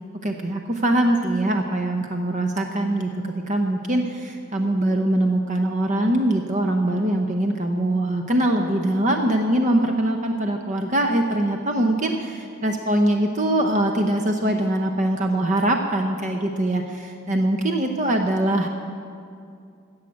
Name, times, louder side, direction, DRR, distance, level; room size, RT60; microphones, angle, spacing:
voice 1, 0.2-18.7, right 1 dB, 35° right, 4 dB, 0.7 m, -22 dB
15.5 x 6.4 x 8.5 m, 2.4 s
head